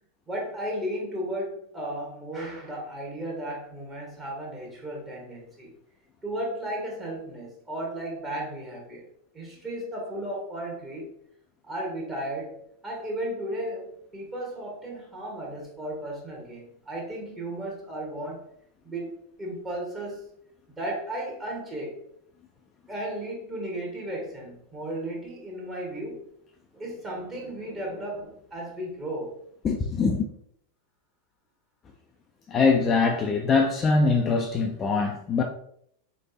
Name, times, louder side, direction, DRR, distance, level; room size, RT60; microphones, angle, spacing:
voice 1, 0.3-5.7 6.2-9.0 9.3-11.1 11.7-18.5 18.8-20.3 20.7-22.0 22.9-26.2 26.7-29.4, right 1 dB, 15° right, 1.1 m, -35 dB
voice 2, 29.6-30.2 32.5-35.4, left 4 dB, 25° left, 0.4 m, -23 dB
3.9 x 3.3 x 2.7 m
figure-of-eight pair, 90°, 0 cm